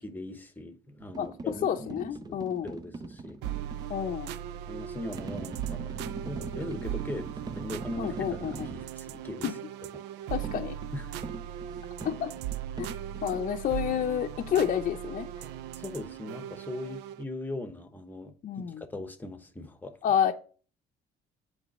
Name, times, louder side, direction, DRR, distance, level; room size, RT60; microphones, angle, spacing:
voice 1, 0.0-3.4 4.7-8.5 8.7-9.4 10.9-11.0 15.8-20.0, left 1 dB, 10° left, 1.0 m, -40 dB
sound 1, 1.0-3.9 5.2-8.9 10.4-13.4, right 3 dB, 25° right, 0.5 m, -41 dB
voice 2, 1.6-2.7 3.9-4.3 8.0-8.7 9.4-9.5 10.3-10.7 12.0-12.3 12.8-12.9 13.2-15.3 18.4-18.8 20.0-20.3, left 9 dB, 50° left, 0.6 m, -29 dB
sound 2, 3.4-17.2, right 11 dB, 90° right, 0.4 m, -38 dB
8.2 x 3.3 x 5.4 m
cardioid pair, 110°, 17 cm